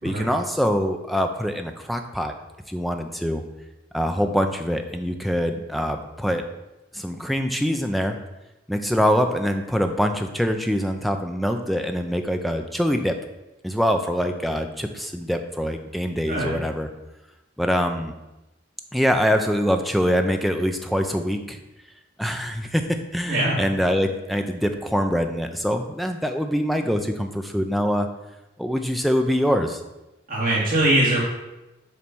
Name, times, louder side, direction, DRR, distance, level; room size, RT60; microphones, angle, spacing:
voice 1, 0.0-2.3 2.7-3.4 3.9-6.4 6.9-8.2 8.7-13.1 13.6-16.9 17.6-18.1 18.9-21.6 22.2-22.8 23.1-28.1 28.6-29.8, equal, ahead, 5 dB, 0.4 m, -24 dB
voice 2, 16.3-16.6 23.3-23.6 30.3-31.2, right 1 dB, 45° right, -6 dB, 2.6 m, -22 dB
7.0 x 3.3 x 6.0 m, 0.99 s
head